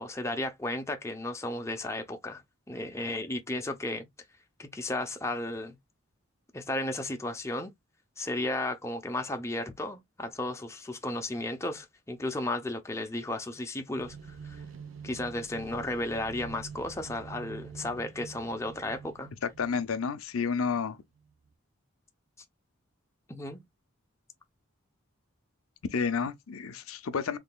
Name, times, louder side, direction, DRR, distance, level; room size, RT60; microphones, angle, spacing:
voice 1, 0.0-2.4 2.7-4.1 4.6-5.8 6.5-7.7 8.2-14.2 14.4-14.6 15.0-19.3 23.3-23.6, left 1 dB, 15° left, 0.6 m, -34 dB
sound 1, 14.0-21.5, right 5 dB, 70° right, 0.7 m, -47 dB
voice 2, 19.6-21.0 25.9-27.4, left 5 dB, 85° left, 0.5 m, -30 dB
3.7 x 3.3 x 2.2 m
head